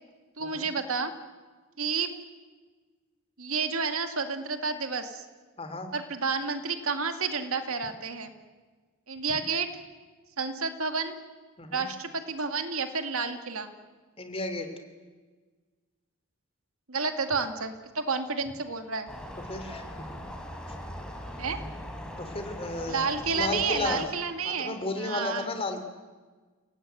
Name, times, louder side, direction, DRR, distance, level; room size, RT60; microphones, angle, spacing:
voice 1, 0.4-1.1 1.8-2.1 3.4-5.2 5.9-8.3 9.1-9.7 10.4-11.2 11.7-13.7 16.9-19.1 21.4-21.6 22.9-25.5, right 5 dB, 70° right, 7 dB, 2.3 m, -30 dB
voice 2, 5.6-5.9 11.6-11.9 14.2-14.7 19.5-20.0 22.2-23.1 23.3-24.1 24.4-25.8, left 2 dB, 25° left, 7 dB, 3.0 m, -33 dB
sound 1, 19.1-24.1, equal, 5° left, 3.8 m, -40 dB
30.0 x 18.5 x 9.2 m, 1.4 s
head